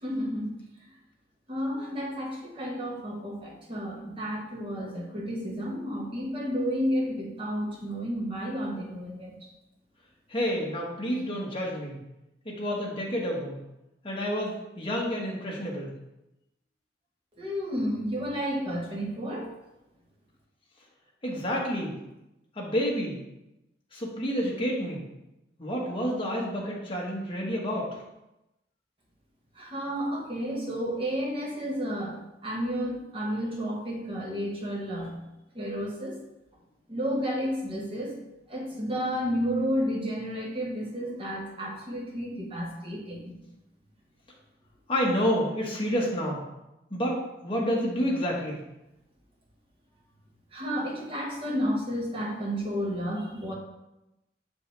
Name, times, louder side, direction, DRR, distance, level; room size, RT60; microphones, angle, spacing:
voice 1, 0.0-0.5 1.5-9.3 17.4-19.5 29.5-32.2 32.4-35.2 35.5-36.2 36.9-38.1 38.5-43.3 50.5-53.5, equal, 30° right, -3 dB, 1.5 m, -31 dB
voice 2, 10.3-12.0 12.4-13.6 14.0-15.9 21.2-22.0 22.5-23.2 23.9-25.0 25.6-28.0 44.9-46.4 46.9-48.6, equal, 30° left, -3 dB, 1.5 m, -29 dB
6.5 x 5.3 x 3.4 m, 0.93 s
head